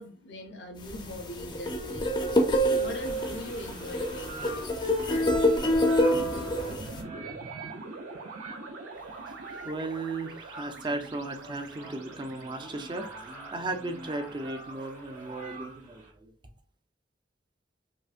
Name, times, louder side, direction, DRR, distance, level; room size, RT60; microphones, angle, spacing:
voice 1, 0.0-2.1 2.8-5.4, equal, 65° left, 0.6 m, -41 dB
sound 1, 0.9-7.0, equal, 25° left, 0.5 m, -27 dB
sound 2, 2.6-16.1, right 2 dB, 45° right, 1.0 m, -46 dB
sound 3, 6.1-14.4, right 2 dB, 80° right, 0.5 m, -44 dB
voice 2, 9.6-16.3, right 2 dB, 25° right, 0.5 m, -36 dB
5.0 x 2.1 x 2.4 m
head